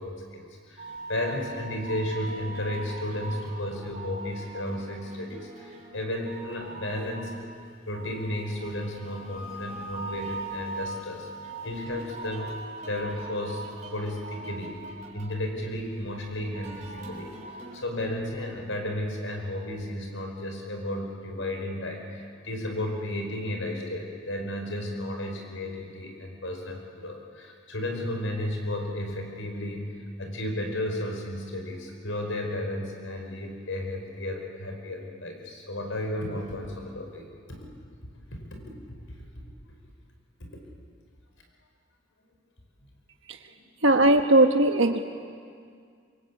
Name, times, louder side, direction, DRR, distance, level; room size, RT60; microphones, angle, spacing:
voice 1, 0.0-7.5 7.9-11.3 11.6-14.8 15.1-17.3 17.7-37.6 38.3-38.4 43.5-43.6, left 1 dB, 75° left, 2 dB, 5.2 m, -33 dB
sound 1, 0.8-17.8, right 2 dB, 40° right, 3.8 m, -41 dB
voice 2, 43.8-45.0, right 2 dB, 65° right, 5 dB, 1.3 m, -19 dB
25.5 x 22.0 x 8.5 m, 2.2 s
head